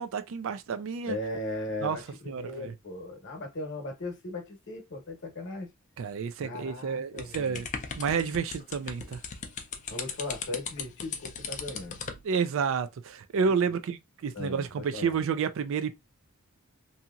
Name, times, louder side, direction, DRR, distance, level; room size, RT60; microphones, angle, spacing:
voice 1, 0.0-1.2 1.8-2.0 2.3-2.7 6.0-7.7 7.9-9.2 12.2-16.0, right 6 dB, 60° right, 0.3 m, -30 dB
voice 2, 1.1-5.7 6.4-7.6 9.9-12.0 13.7-13.8 14.3-15.2, left 2 dB, 55° left, 0.9 m, -38 dB
sound 1, 7.2-12.2, left 6 dB, 35° left, 0.4 m, -38 dB
2.8 x 2.7 x 2.3 m
head